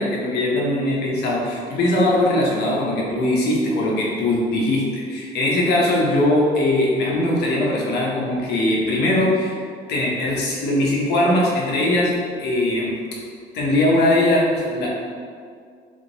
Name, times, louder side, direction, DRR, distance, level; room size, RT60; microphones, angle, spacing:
voice 1, 0.0-9.6 9.9-12.9 13.5-14.9, left 1 dB, 75° left, -3 dB, 1.1 m, -20 dB
3.7 x 3.4 x 3.9 m, 2.2 s
cardioid pair, 110°, 17 cm